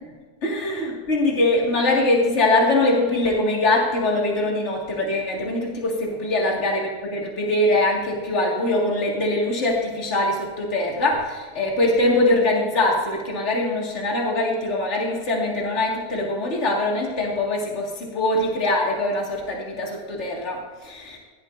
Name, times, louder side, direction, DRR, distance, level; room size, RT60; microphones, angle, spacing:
voice 1, 0.4-21.2, left 2 dB, 45° left, -2 dB, 2.4 m, -22 dB
15.5 x 12.0 x 2.6 m, 1.4 s
omnidirectional pair, 1.7 m